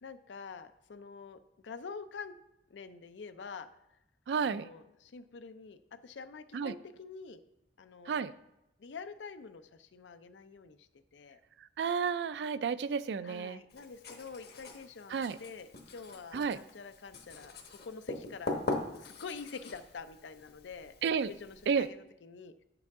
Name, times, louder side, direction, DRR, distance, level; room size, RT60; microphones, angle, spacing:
voice 1, 0.0-2.3 2.7-3.7 4.4-7.4 7.8-8.2 8.8-11.4 13.2-22.5, left 5 dB, 90° left, 11 dB, 0.5 m, -47 dB
voice 2, 4.3-4.7 6.5-6.7 8.1-8.3 11.8-13.6 15.1-15.4 16.3-16.6 21.0-21.3 21.7-21.9, right 6 dB, 70° right, 16 dB, 0.3 m, -31 dB
Writing, 13.7-21.9, left 2 dB, 60° left, 1.1 m, -42 dB
8.6 x 6.8 x 3.6 m, 0.89 s
head